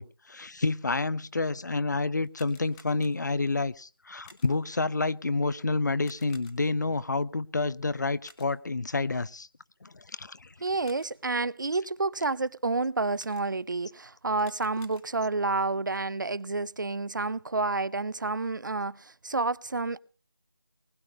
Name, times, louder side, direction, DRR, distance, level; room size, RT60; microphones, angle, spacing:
voice 1, 0.0-9.5 9.8-10.5, left 3 dB, 50° left, 0.6 m, -29 dB
sound 1, 2.2-3.5 4.2-4.8 6.0-6.9 8.2-8.8 10.6-11.4 13.1-13.8 14.3-15.4, left 4 dB, 5° left, 0.9 m, -57 dB
voice 2, 10.6-20.0, right 3 dB, 60° right, 0.6 m, -29 dB
20.0 x 10.0 x 5.3 m
figure-of-eight pair, 170°, 12 cm